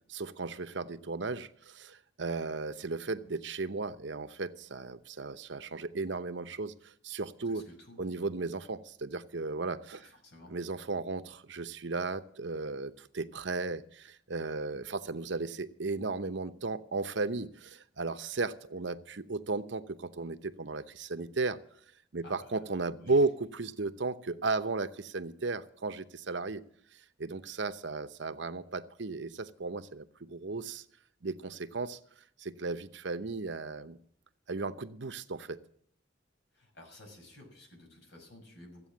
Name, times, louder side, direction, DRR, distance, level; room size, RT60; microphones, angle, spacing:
voice 1, 0.1-7.6 8.0-10.1 10.5-21.6 22.1-26.6 26.9-30.8 31.2-32.0 32.4-34.0 34.5-35.6, right 3 dB, 65° right, 10 dB, 0.8 m, -35 dB
voice 2, 7.4-8.0 10.0-10.5 22.2-23.2 36.5-38.9, left 1 dB, 60° left, 2 dB, 5.9 m, -53 dB
14.5 x 8.5 x 8.5 m, 0.63 s
head